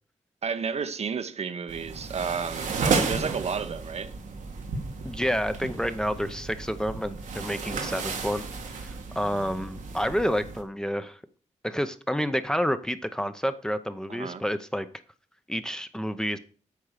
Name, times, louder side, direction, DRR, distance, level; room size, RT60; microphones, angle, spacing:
voice 1, 0.4-4.1 14.1-14.4, right 6 dB, 55° right, 0.7 m, -31 dB
sound 1, 1.7-10.6, right 4 dB, 90° right, 1.5 m, -33 dB
voice 2, 5.0-8.4 8.7-11.2 11.6-14.9 15.5-16.4, equal, 5° left, 0.6 m, -29 dB
8.4 x 4.6 x 6.5 m
wide cardioid pair, 100°, 13 cm